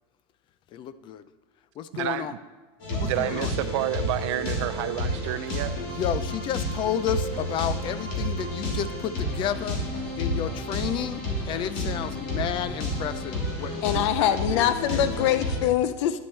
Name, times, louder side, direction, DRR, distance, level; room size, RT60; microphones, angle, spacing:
voice 1, 0.7-1.2 1.8-2.3 2.9-3.5 5.9-9.8 10.2-15.0, left 9 dB, 35° left, 14 dB, 0.4 m, -31 dB
voice 2, 1.9-2.4 2.9-5.7, right 14 dB, 80° right, 8 dB, 0.4 m, -30 dB
sound 1, 2.8-15.6, left 1 dB, 55° left, 3.0 m, -30 dB
voice 3, 13.8-16.2, left 11 dB, 80° left, 12 dB, 0.6 m, -24 dB
10.0 x 10.0 x 3.2 m, 1.3 s
supercardioid pair, 150°, 15 cm